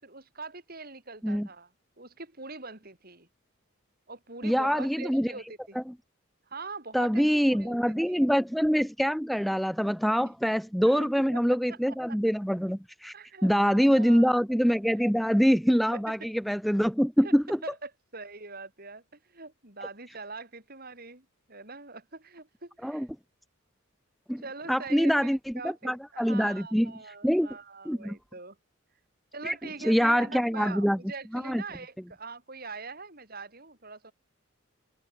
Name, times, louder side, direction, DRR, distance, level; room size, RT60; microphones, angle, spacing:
voice 1, 0.0-1.7 2.0-3.3 4.1-5.8 6.5-7.8 8.1-8.3 10.2-10.3 10.8-11.8 12.1-12.2 13.1-14.3 15.0-15.1 15.9-16.3 17.2-17.3 17.6-23.1 24.4-28.6 29.3-34.1, right 4 dB, 45° right, 5.9 m, -43 dB
voice 2, 4.4-5.3 6.9-13.1 13.4-17.6 22.8-23.1 24.3-24.4 24.7-25.4 25.6-26.9 27.2-27.5 27.8-28.2 29.4-29.5 29.8-31.0 31.3-31.6, equal, ahead, 1.7 m, -25 dB
head